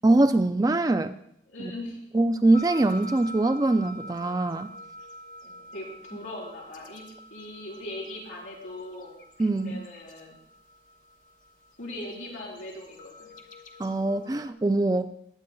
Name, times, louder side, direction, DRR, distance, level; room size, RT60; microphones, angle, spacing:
voice 1, 0.0-1.1 1.6-1.7 2.1-4.7 9.4-9.8 13.8-15.3, right 2 dB, 20° right, 10 dB, 0.3 m, -23 dB
voice 2, 1.5-2.0 5.4-9.2 9.5-10.4 11.8-13.3, left 1 dB, 80° left, -4 dB, 4.4 m, -40 dB
sound 1, 2.5-14.5, equal, 45° left, 1.1 m, -46 dB
20.5 x 9.1 x 2.3 m, 0.72 s
head